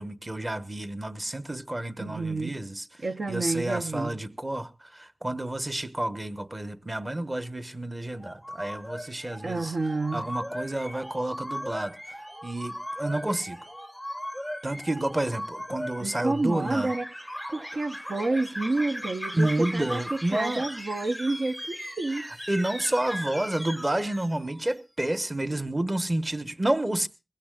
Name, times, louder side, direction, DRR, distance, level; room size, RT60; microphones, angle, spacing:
voice 1, 0.0-2.8 3.3-9.7 10.1-11.9 12.4-13.6 14.6-16.9 19.3-20.6 22.5-27.1, right 1 dB, 35° right, 1.2 m, -30 dB
voice 2, 2.0-2.6 3.0-4.2 9.4-10.2 16.0-17.1 17.5-22.2, right 2 dB, 80° right, 0.7 m, -29 dB
sound 1, 8.2-24.7, equal, ahead, 0.6 m, -38 dB
21.5 x 16.0 x 2.4 m
cardioid pair, 45°, 0 cm